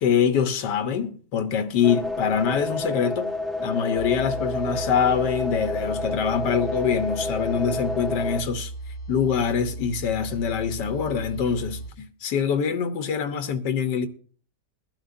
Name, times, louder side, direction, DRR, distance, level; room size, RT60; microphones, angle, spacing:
voice 1, 0.0-3.3 3.6-8.7 9.1-14.1, left 7 dB, 90° left, 1.6 m, -24 dB
sound 1, 1.8-8.4, left 2 dB, ahead, 0.8 m, -29 dB
sound 2, 3.9-11.9, right 2 dB, 60° left, 2.6 m, -36 dB
20.5 x 12.0 x 2.6 m
omnidirectional pair, 1.8 m